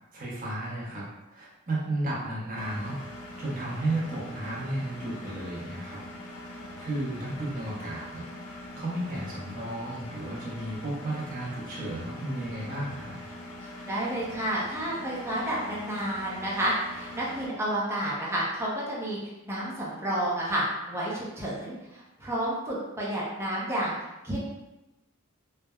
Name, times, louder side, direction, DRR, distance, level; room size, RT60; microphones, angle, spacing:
voice 1, 0.1-1.0 1.3-6.0 6.8-8.3 8.8-13.2, right 1 dB, 40° right, -6 dB, 0.8 m, -33 dB
Engine, 2.6-17.5, left 1 dB, 65° left, 0.4 m, -43 dB
voice 2, 13.9-23.9 24.2-24.4, right 1 dB, 10° right, -7 dB, 0.5 m, -30 dB
3.3 x 2.0 x 2.2 m, 1.0 s
head